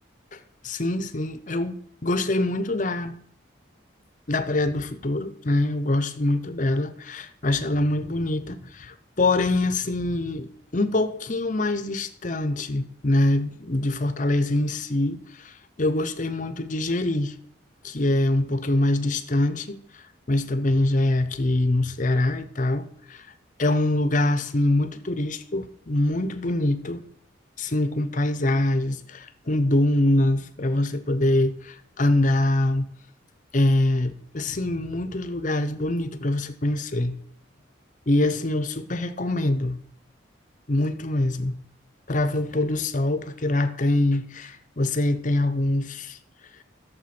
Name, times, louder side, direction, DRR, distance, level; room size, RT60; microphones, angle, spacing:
voice 1, 0.6-3.1 4.3-17.3 17.8-23.3 23.6-27.0 27.6-32.9 33.5-37.2 38.1-39.8 40.7-41.6 42.1-46.2, left 1 dB, 40° left, 0.8 m, -24 dB
11.5 x 7.2 x 6.0 m
head